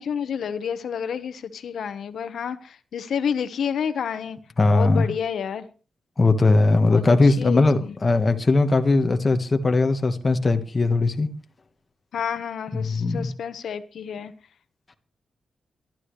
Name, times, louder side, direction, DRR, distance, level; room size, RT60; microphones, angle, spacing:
voice 1, 0.0-4.4 4.7-5.7 6.8-8.0 12.1-14.3, left 7 dB, 75° left, 1.2 m, -30 dB
voice 2, 4.6-5.1 6.2-11.3 12.7-13.3, left 3 dB, 25° left, 1.5 m, -19 dB
23.0 x 12.0 x 3.3 m
wide cardioid pair, 145°, 0 cm